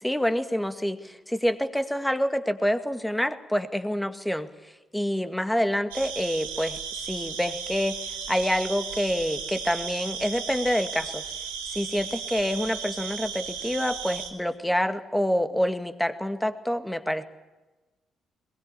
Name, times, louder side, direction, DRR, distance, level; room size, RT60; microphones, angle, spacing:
voice 1, 0.0-6.8 7.1-8.0 8.3-11.2 11.7-17.2, equal, 5° left, 9 dB, 2.2 m, -27 dB
sound 1, 5.9-14.3, right 6 dB, 85° right, 3.5 m, -35 dB
22.0 x 20.5 x 8.5 m, 1.2 s
hypercardioid pair, 45°, 0 cm